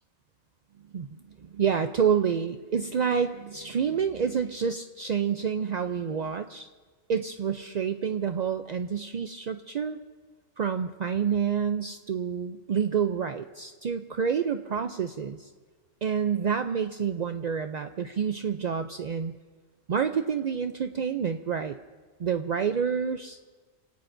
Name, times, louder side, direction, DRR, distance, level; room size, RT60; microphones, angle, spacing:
voice 1, 0.9-6.7 7.1-10.0 10.6-15.5 16.0-19.4 19.9-21.8 22.2-23.4, right 7 dB, 60° right, 8 dB, 0.4 m, -28 dB
29.0 x 18.0 x 2.6 m, 1.4 s
omnidirectional pair, 1.3 m